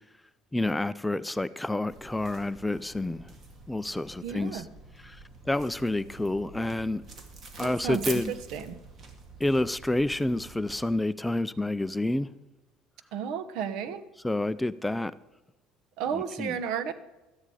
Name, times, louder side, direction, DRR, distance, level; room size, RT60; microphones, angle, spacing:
voice 1, 0.5-3.2 3.7-4.6 5.5-7.0 7.6-8.3 9.4-12.3 14.2-15.1 16.4-16.5, left 1 dB, 10° left, 0.4 m, -28 dB
sound 1, 1.9-10.8, right 3 dB, 40° right, 2.1 m, -46 dB
voice 2, 4.2-4.7 7.6-8.8 13.1-14.0 16.0-16.9, right 7 dB, 70° right, 1.0 m, -33 dB
13.0 x 10.0 x 4.9 m
cardioid pair, 110°, 0 cm